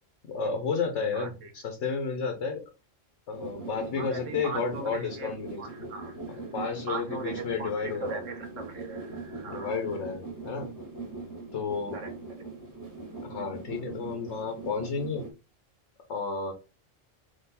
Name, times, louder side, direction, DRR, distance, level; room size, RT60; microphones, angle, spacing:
voice 1, 0.3-2.6 3.3-5.6 6.5-8.2 9.4-10.7 11.5-12.0 13.2-15.2 16.1-16.5, left 5 dB, 70° left, 4 dB, 1.1 m, -32 dB
voice 2, 1.1-1.5 4.0-5.3 5.6-6.5 6.9-9.8 11.9-12.1, right 4 dB, 85° right, 4 dB, 1.4 m, -39 dB
sound 1, 3.3-15.3, right 3 dB, 15° right, 1.5 m, -41 dB
3.7 x 2.9 x 4.2 m, 0.30 s
omnidirectional pair, 1.3 m